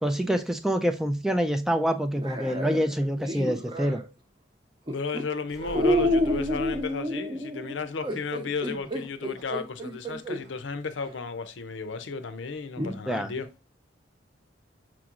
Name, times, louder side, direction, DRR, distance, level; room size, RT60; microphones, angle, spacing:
voice 1, 0.0-4.0 13.1-13.3, equal, ahead, 0.3 m, -26 dB
sound 1, 2.1-4.1 4.9-5.2 5.7-10.4 11.1-11.2 12.8-13.0, equal, 25° right, 0.7 m, -29 dB
voice 2, 4.9-13.5, left 4 dB, 80° left, 0.6 m, -33 dB
sound 2, 5.5-6.9 8.6-9.6 9.9-10.0 10.4-10.6, equal, 60° right, 1.0 m, -40 dB
6.0 x 3.0 x 2.4 m
head